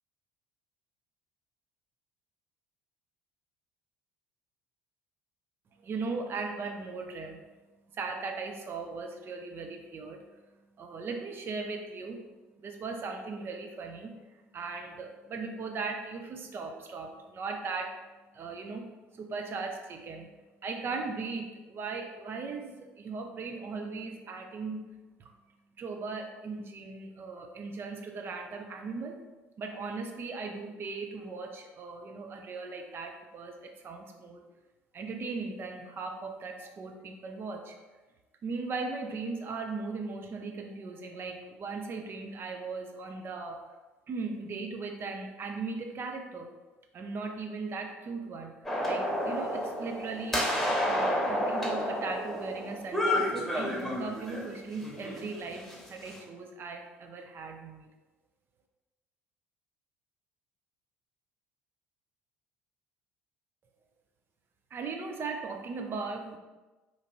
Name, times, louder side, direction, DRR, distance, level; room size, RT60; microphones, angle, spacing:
voice 1, 5.8-7.4 7.9-10.2 10.8-12.2 12.6-18.0 18.3-18.8 19.1-20.3 20.6-24.8 25.2-25.3 25.8-29.2 29.6-34.4 34.9-37.7 38.4-43.6 44.1-46.5 46.9-48.5 48.9-57.9 64.7-66.4, right 4 dB, 35° right, 3 dB, 0.6 m, -38 dB
sound 1, 48.6-54.4 54.8-56.2, left 1 dB, 5° left, 1.2 m, -31 dB
2.9 x 2.5 x 4.2 m, 1.2 s
figure-of-eight pair, 60°, 7 cm